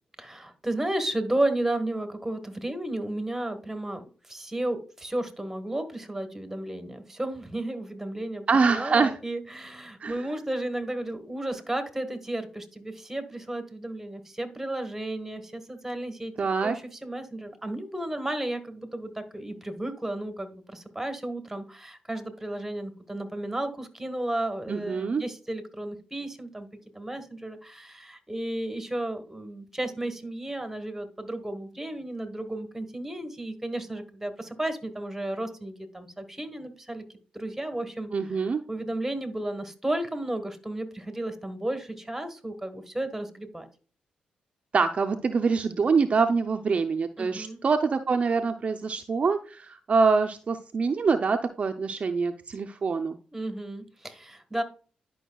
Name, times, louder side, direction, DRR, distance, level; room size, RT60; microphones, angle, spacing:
voice 1, 0.2-4.0 4.3-26.7 26.9-37.0 37.3-38.1 38.7-43.7 47.2-47.6 53.3-54.6, right 1 dB, 10° right, 8 dB, 1.4 m, -33 dB
voice 2, 8.5-9.1 10.0-10.2 16.4-16.8 24.7-25.2 38.1-38.6 44.7-53.2, right 4 dB, 45° right, 6 dB, 0.6 m, -25 dB
11.0 x 5.3 x 2.3 m, 0.39 s
cardioid pair, 65°, 3 cm